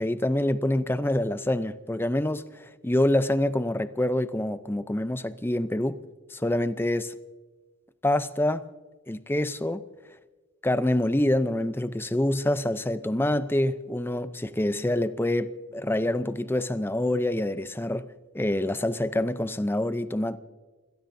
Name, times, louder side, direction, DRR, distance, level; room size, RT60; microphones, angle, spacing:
voice 1, 0.0-6.0 6.3-7.1 8.0-8.6 9.1-9.8 10.6-18.1 18.3-20.4, left 1 dB, 10° left, 0.5 m, -26 dB
29.0 x 17.5 x 2.7 m
head